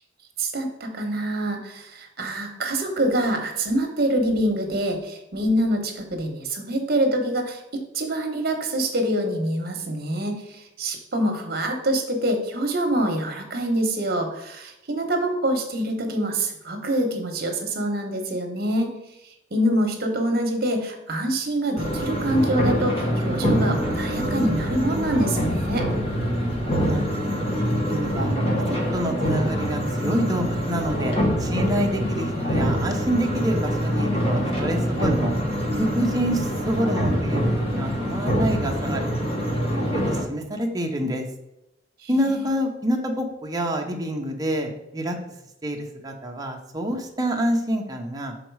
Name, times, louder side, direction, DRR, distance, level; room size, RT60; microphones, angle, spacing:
voice 1, 0.4-18.9 19.5-25.9 42.4-42.5, right 1 dB, 55° right, 4 dB, 1.2 m, -25 dB
sound 1, 21.8-40.2, equal, 30° left, 1.2 m, -24 dB
voice 2, 26.6-27.5 27.8-28.4 28.7-35.3 35.8-39.1 39.4-41.3 42.1-45.2 45.6-48.3, right 1 dB, 20° right, 2 dB, 0.9 m, -27 dB
6.0 x 4.0 x 4.7 m, 0.87 s
head